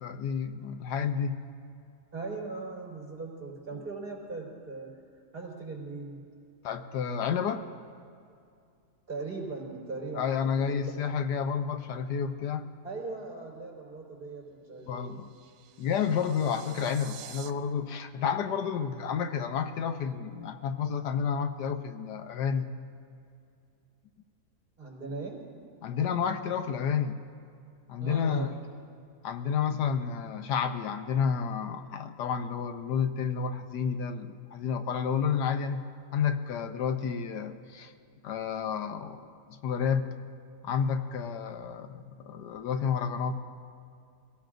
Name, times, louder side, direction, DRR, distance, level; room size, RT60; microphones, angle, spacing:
voice 1, 0.0-1.4 6.6-7.7 10.1-12.6 14.9-15.3 15.8-22.7 25.8-27.2 27.9-28.5 29.2-35.8 36.1-37.9 38.2-39.2 39.5-40.1 40.6-43.4, left 7 dB, 85° left, 8 dB, 1.4 m, -30 dB
voice 2, 2.1-5.0 5.3-6.2 9.1-10.5 10.9-11.0 12.8-15.2 24.8-25.5 28.0-28.6, right 3 dB, 30° right, -3 dB, 4.4 m, -39 dB
sound 1, 14.8-17.5, right 10 dB, 85° right, 1.2 m, -48 dB
25.0 x 17.0 x 2.6 m, 2.4 s
omnidirectional pair, 1.7 m